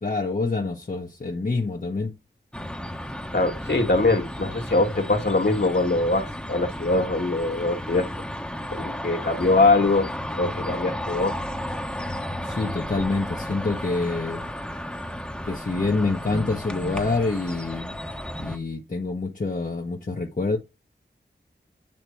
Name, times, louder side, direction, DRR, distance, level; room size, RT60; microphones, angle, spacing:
voice 1, 0.0-2.2 12.4-14.5 15.4-18.0 18.3-20.6, left 3 dB, 45° left, 1.2 m, -27 dB
sound 1, 2.5-18.6, equal, 5° left, 1.1 m, -33 dB
voice 2, 3.3-8.1 8.7-11.4, left 2 dB, 60° left, 2.0 m, -22 dB
8.8 x 3.0 x 4.5 m
wide cardioid pair, 50°, 20 cm